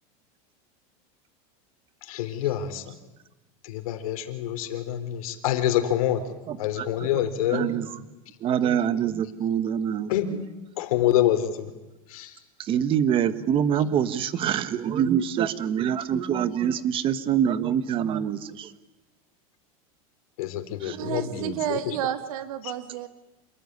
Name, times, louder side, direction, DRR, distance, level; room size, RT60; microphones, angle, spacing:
voice 1, 2.0-2.9 3.6-6.2 6.6-7.7 10.1-10.3 10.8-11.7 12.1-12.4 20.4-21.9 22.6-22.7, left 11 dB, 75° left, 8 dB, 3.9 m, -26 dB
voice 2, 6.5-6.8 7.1-7.2 7.5-7.8 8.4-10.1 12.7-18.7 20.8-21.6, right 9 dB, 30° right, 12 dB, 1.5 m, -25 dB
voice 3, 20.9-23.1, right 10 dB, 80° right, 9 dB, 2.1 m, -31 dB
28.5 x 20.5 x 9.8 m, 1.1 s
supercardioid pair, 155°, 18 cm